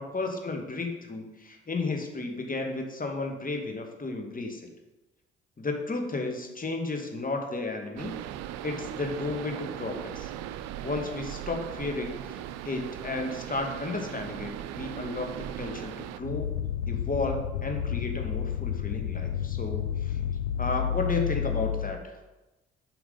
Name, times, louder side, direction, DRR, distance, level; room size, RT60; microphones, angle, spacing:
voice 1, 0.0-4.7 5.6-8.2 8.6-10.3 10.8-15.3 15.6-16.5 16.9-20.2 20.6-22.0, left 3 dB, 30° left, 4 dB, 2.1 m, -33 dB
sound 1, 8.0-16.2, right 11 dB, 65° right, 0.6 m, -38 dB
sound 2, 16.2-22.0, left 9 dB, 85° left, 0.5 m, -31 dB
9.0 x 5.8 x 5.5 m, 1.1 s
figure-of-eight pair, 45°, 29 cm